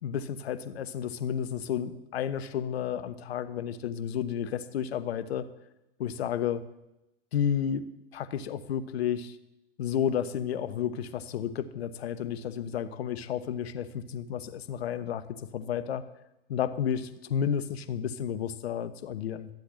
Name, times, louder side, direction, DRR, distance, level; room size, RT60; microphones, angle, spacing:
voice 1, 0.0-5.5 6.0-6.6 7.3-9.4 9.8-16.0 16.5-19.5, left 8 dB, 80° left, 12 dB, 1.1 m, -32 dB
13.5 x 8.0 x 8.8 m, 0.91 s
hypercardioid pair, 105°, 31 cm